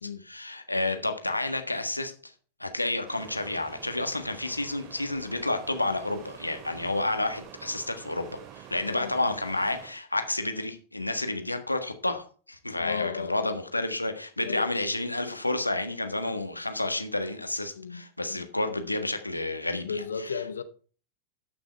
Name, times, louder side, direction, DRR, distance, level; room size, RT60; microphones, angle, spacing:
voice 1, 0.2-2.3 2.6-20.4, left 2 dB, 85° left, 1.4 m, -30 dB
sound 1, 3.0-9.9, right 10 dB, 40° right, 2.5 m, -47 dB
voice 2, 12.7-13.6 14.4-14.7 17.8-18.5 19.8-20.6, left 6 dB, 70° left, 0.8 m, -35 dB
13.0 x 6.1 x 4.5 m
figure-of-eight pair, 90°, 0 cm